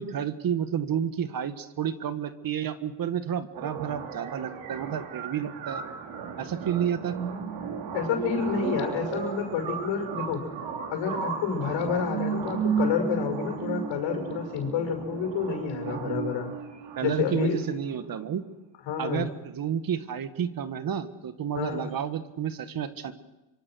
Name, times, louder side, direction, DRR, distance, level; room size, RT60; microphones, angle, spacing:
voice 1, 0.0-5.8 6.4-7.2 15.8-16.3 16.9-18.4 19.0-23.1, right 8 dB, 45° right, 11 dB, 1.7 m, -31 dB
sound 1, 3.5-17.5, right 6 dB, 70° right, 3.9 m, -34 dB
voice 2, 7.9-10.4 10.9-16.5 17.0-17.6 18.9-19.3 21.5-21.9, left 6 dB, 70° left, 4 dB, 6.2 m, -29 dB
25.0 x 24.5 x 6.3 m, 1.0 s
supercardioid pair, 90°, 46 cm